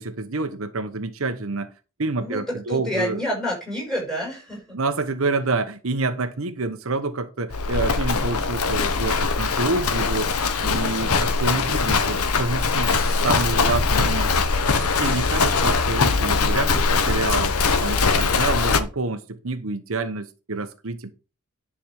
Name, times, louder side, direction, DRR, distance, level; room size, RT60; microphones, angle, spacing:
voice 1, 0.0-1.7 2.0-3.2 4.7-10.3 10.6-14.5 14.7-21.1, right 3 dB, 65° right, 0.9 m, -28 dB
voice 2, 2.2-4.8, equal, ahead, 5.4 m, -28 dB
Livestock farm animals working animals, 7.5-18.8, left 4 dB, 90° left, 1.0 m, -21 dB
10.5 x 4.8 x 6.3 m
head